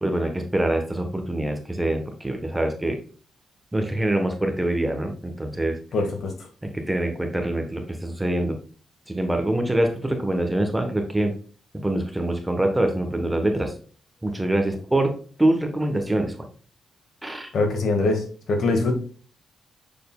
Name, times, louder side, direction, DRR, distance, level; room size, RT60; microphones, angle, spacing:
voice 1, 0.0-3.0 3.7-5.8 6.6-8.6 9.1-11.3 11.7-13.7 14.2-16.3 17.2-17.5, right 1 dB, 10° right, 4 dB, 1.1 m, -24 dB
voice 2, 5.9-6.3 17.5-18.9, left 3 dB, 60° left, 4 dB, 1.7 m, -23 dB
6.9 x 6.3 x 2.3 m, 0.41 s
cardioid pair, 130°, 0 cm